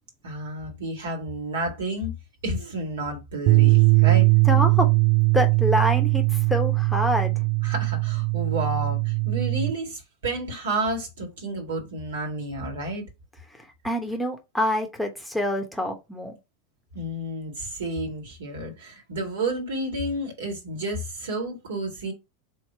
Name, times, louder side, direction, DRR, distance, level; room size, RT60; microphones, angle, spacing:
voice 1, 0.2-2.1 2.4-4.3 7.6-13.1 16.9-22.1, right 1 dB, 65° right, 1.8 m, -31 dB
sound 1, 3.5-9.7, right 29 dB, 45° right, 0.4 m, -20 dB
voice 2, 4.5-4.9 5.3-7.4 13.8-16.4, left 1 dB, 5° left, 0.9 m, -26 dB
3.9 x 2.9 x 4.4 m
figure-of-eight pair, 90°, 0 cm